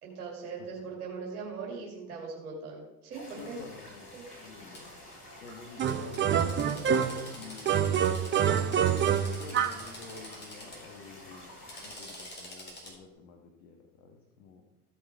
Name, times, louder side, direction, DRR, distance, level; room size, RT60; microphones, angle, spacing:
voice 1, 0.0-3.6 4.1-4.3, right 4 dB, 70° right, -2 dB, 2.4 m, -40 dB
sound 1, 3.1-12.0, left 1 dB, 85° left, 2.7 m, -49 dB
voice 2, 3.4-4.9 5.4-8.2 8.9-11.5 11.8-14.6, left 5 dB, 60° left, 3 dB, 1.4 m, -50 dB
Drill, 4.7-4.8 5.9-10.8 11.5-12.9, left 1 dB, 20° left, 3.5 m, -47 dB
sound 2, 5.8-7.3 7.7-9.9, right 8 dB, 25° right, 0.7 m, -26 dB
15.0 x 5.8 x 4.6 m, 0.99 s
figure-of-eight pair, 65°, 45 cm